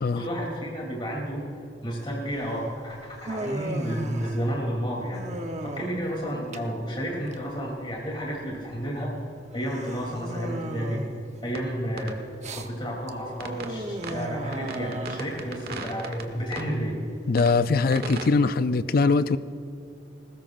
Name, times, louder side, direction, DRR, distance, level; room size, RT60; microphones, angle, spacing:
voice 1, 0.1-1.5 1.8-5.2 5.6-9.1 9.5-11.0 11.4-12.2 12.5-16.9, equal, 30° left, -2 dB, 3.2 m, -31 dB
Human voice, 2.3-17.5, right 1 dB, 40° right, 0.9 m, -38 dB
sound 1, 11.6-11.7 12.0-12.2 13.4-13.7 14.0-14.2 14.5-16.2 16.5-16.7 17.4-17.5 17.9-18.3, right 3 dB, 60° right, 1.4 m, -36 dB
voice 2, 17.3-19.4, left 4 dB, 55° left, 13 dB, 0.5 m, -22 dB
21.0 x 19.5 x 2.6 m, 2.8 s
head